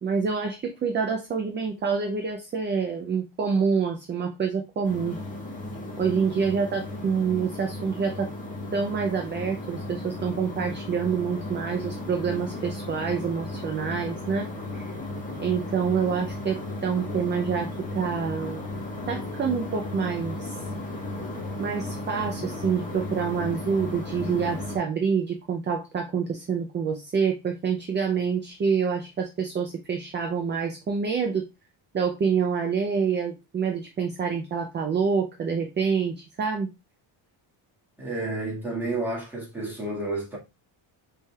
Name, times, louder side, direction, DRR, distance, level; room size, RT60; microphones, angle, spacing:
voice 1, 0.0-5.2 6.0-8.3 8.7-14.5 14.7-14.9 15.4-18.7 19.1-20.6 21.6-31.5 31.9-36.7, right 6 dB, 25° right, 0.4 m, -27 dB
sound 1, 4.8-24.8, left 2 dB, 15° left, 1.2 m, -35 dB
voice 2, 38.0-40.4, right 2 dB, 5° right, 1.6 m, -30 dB
5.4 x 3.4 x 2.2 m
cardioid pair, 160°, 49 cm